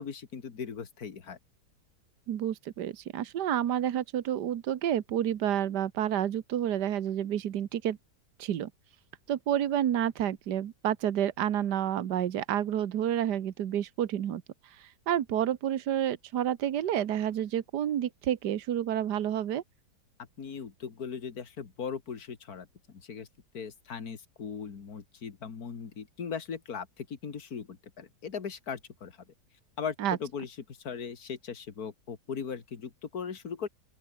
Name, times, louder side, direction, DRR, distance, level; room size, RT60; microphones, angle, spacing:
voice 1, 0.0-1.4 20.4-22.7 22.9-23.3 23.5-29.2 29.8-33.7, left 6 dB, 60° left, 2.5 m, -39 dB
voice 2, 2.3-8.0 8.4-8.7 9.3-19.6 30.0-30.2, right 10 dB, 75° right, 1.7 m, -29 dB
open air
omnidirectional pair, 1.8 m